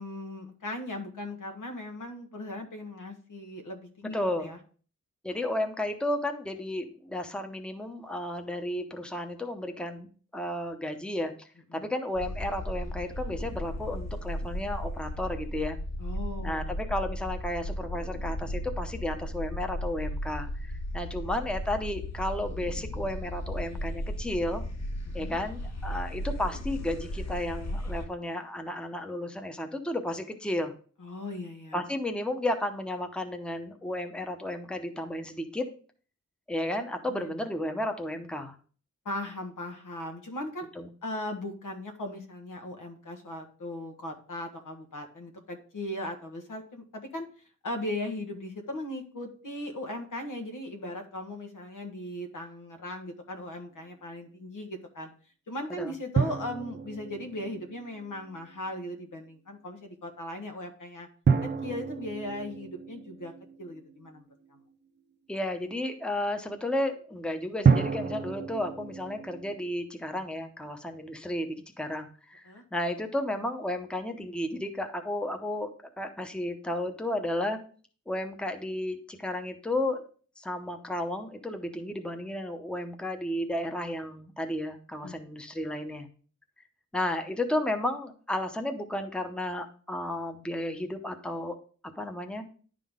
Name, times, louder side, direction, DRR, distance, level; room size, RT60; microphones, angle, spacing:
voice 1, 0.0-4.6 11.7-11.9 16.0-16.7 25.2-25.4 31.0-31.8 37.1-37.3 39.0-40.7 41.0-47.3 47.6-55.1 55.5-61.1 61.4-63.3 63.6-64.2 64.5-64.6 72.4-72.6 85.0-85.1, left 1 dB, 85° left, 4 dB, 1.3 m, -38 dB
voice 2, 4.1-4.5 5.2-15.8 16.4-24.6 25.1-30.7 31.7-35.7 36.5-38.5 40.8-40.9 55.7-55.9 65.3-75.7 76.0-77.6 78.1-80.0 80.4-86.1 86.9-91.6 92.0-92.5, left 1 dB, 5° left, 6 dB, 0.7 m, -33 dB
sound 1, 12.1-28.1, equal, 60° left, 1.5 m, -35 dB
sound 2, 56.2-58.4 61.3-64.2 67.6-69.5, right 5 dB, 35° right, 0.6 m, -29 dB
10.5 x 3.8 x 3.6 m, 0.42 s
wide cardioid pair, 100°, 31 cm